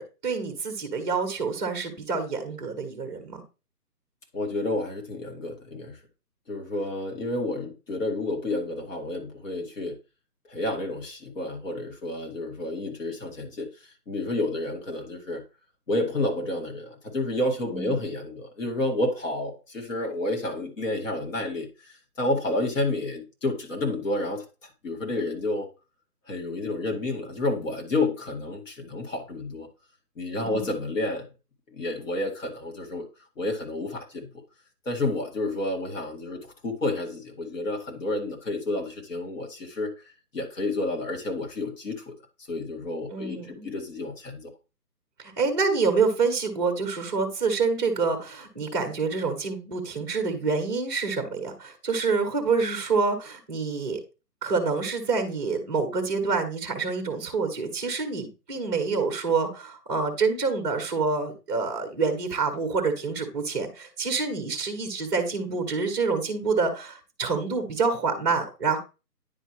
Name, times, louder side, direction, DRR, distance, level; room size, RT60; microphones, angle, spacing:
voice 1, 0.0-3.4 17.7-18.0 30.4-30.8 43.1-43.7 45.2-54.0 54.4-68.8, right 4 dB, 15° right, 1 dB, 1.0 m, -27 dB
voice 2, 4.3-6.0 6.5-10.0 10.5-13.7 14.1-15.4 15.9-24.4 24.8-25.7 26.3-29.7 30.2-31.3 31.7-33.0 33.4-34.3 34.9-39.9 40.3-42.1 42.5-44.5, left 2 dB, 50° left, 1 dB, 2.1 m, -30 dB
9.9 x 4.6 x 3.1 m, 0.30 s
hypercardioid pair, 160°, 48 cm